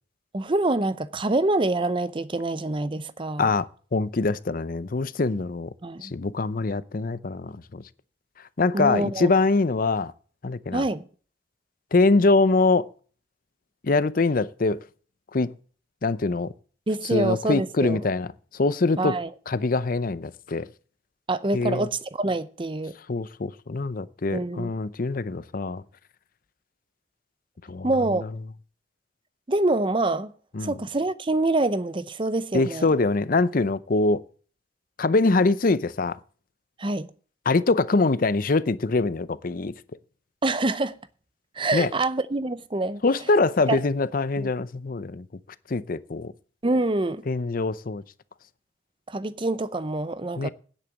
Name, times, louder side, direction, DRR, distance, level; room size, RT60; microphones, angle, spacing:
voice 1, 0.3-3.5 5.8-6.1 8.7-9.3 10.7-11.0 16.9-18.0 19.0-19.3 21.3-22.9 24.3-24.7 27.8-28.2 29.5-30.3 30.6-32.9 36.8-37.1 40.4-41.0 41.6-43.0 43.7-43.8 44.4-44.5 46.6-47.2 49.1-50.5, right 2 dB, 25° right, 0.6 m, -25 dB
voice 2, 3.4-5.7 6.0-7.8 8.6-10.1 10.4-10.8 11.9-12.9 13.8-14.8 15.3-15.5 16.0-16.5 17.1-19.2 19.5-20.7 21.5-21.9 23.1-25.8 27.7-27.9 30.5-30.7 32.5-34.2 35.0-36.2 37.5-39.7 41.7-41.9 43.0-45.2 45.7-46.3 47.3-48.0 50.4-50.5, left 3 dB, 50° left, 0.6 m, -23 dB
9.9 x 8.7 x 7.3 m
head